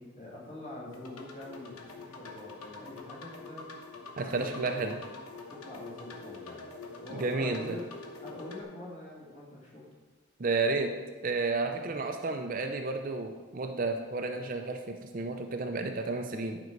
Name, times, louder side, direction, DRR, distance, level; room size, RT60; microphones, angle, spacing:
voice 1, 0.1-3.6 4.1-4.8 5.5-6.7 7.0-7.8 8.2-9.9 11.6-11.9 14.1-14.3, left 1 dB, 30° left, -5 dB, 2.3 m, -45 dB
sound 1, 0.9-8.6, left 3 dB, 90° left, 1.0 m, -45 dB
voice 2, 4.2-5.0 7.1-7.8 10.4-10.9 11.2-16.6, right 3 dB, 40° right, 4 dB, 0.5 m, -31 dB
11.0 x 5.3 x 4.6 m, 1.3 s
head